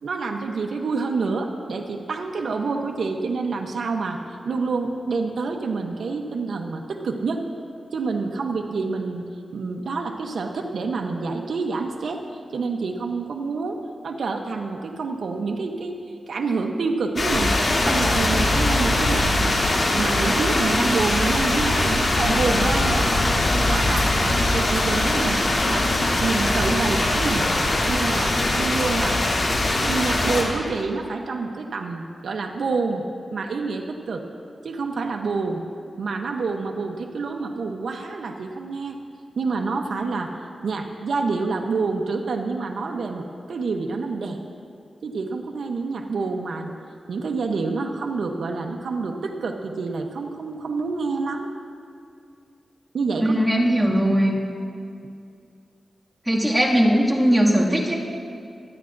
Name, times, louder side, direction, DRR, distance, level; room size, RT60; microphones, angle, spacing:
voice 1, 0.0-4.2 4.4-7.4 7.9-9.2 9.5-12.2 12.5-16.0 16.3-17.5 17.8-19.6 19.9-23.1 23.5-25.9 26.2-27.5 27.8-29.3 29.8-33.0 33.3-34.2 34.6-35.6 36.0-39.0 39.4-40.3 40.6-44.4 45.0-46.7 47.1-51.5 52.9-53.4, right 4 dB, 80° right, 2 dB, 0.8 m, -27 dB
sound 1, 17.2-30.4, left 2 dB, 60° left, 2.6 m, -21 dB
voice 2, 53.2-54.4 56.3-58.0, equal, 10° right, -4 dB, 2.2 m, -19 dB
25.5 x 9.6 x 2.6 m, 2.4 s
wide cardioid pair, 75°, 0 cm